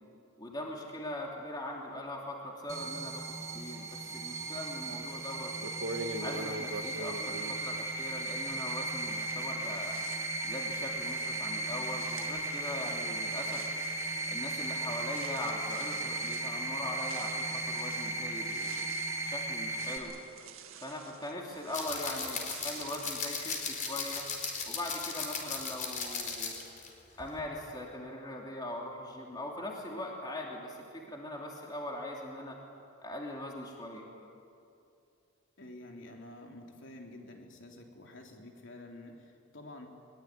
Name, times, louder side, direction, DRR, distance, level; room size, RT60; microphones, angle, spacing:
voice 1, 0.4-5.5 6.1-10.0 10.4-13.7 14.3-18.8 19.2-20.2 20.8-24.2 24.6-26.5 27.2-32.6 33.0-34.0, left 1 dB, 20° left, -1 dB, 3.0 m, -41 dB
sound 1, 2.7-20.0, right 2 dB, 15° right, 2.5 m, -36 dB
sound 2, 5.1-5.2 5.6-8.7 9.0-23.8, right 2 dB, 80° right, 1.9 m, -46 dB
sound 3, 21.7-26.9 27.2-27.4, left 5 dB, 40° left, 4.5 m, -37 dB
voice 2, 35.6-39.9, left 1 dB, 60° left, 1 dB, 3.6 m, -49 dB
22.5 x 22.5 x 9.7 m, 2.6 s
head